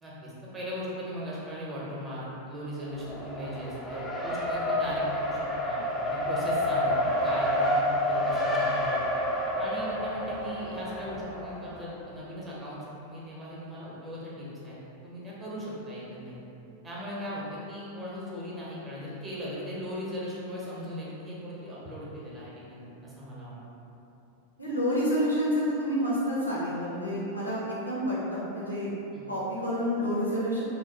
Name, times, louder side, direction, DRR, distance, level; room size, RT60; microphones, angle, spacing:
voice 1, 0.0-9.0 9.6-14.8 15.0-16.4 16.8-23.6 29.1-29.3, equal, 20° right, -7 dB, 0.8 m, -38 dB
Race car auto racing, 2.8-11.9, left 1 dB, 10° left, 0.4 m, -29 dB
voice 2, 24.6-28.9 29.3-30.6, equal, 85° left, -7 dB, 0.7 m, -29 dB
3.1 x 2.1 x 3.0 m, 2.9 s
figure-of-eight pair, 90°, 0 cm